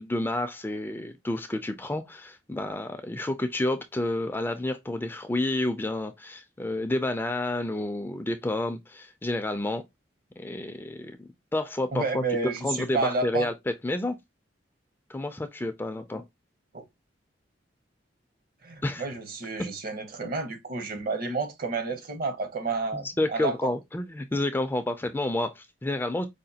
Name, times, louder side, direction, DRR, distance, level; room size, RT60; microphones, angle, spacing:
voice 1, 0.0-9.8 10.4-12.2 12.6-13.5 13.8-14.2 15.1-16.2 18.8-19.0 22.9-26.3, left 1 dB, 10° left, 0.3 m, -30 dB
voice 2, 11.9-13.5 16.7-16.8 18.6-23.7, right 3 dB, 55° right, 0.8 m, -30 dB
4.9 x 2.2 x 2.7 m
head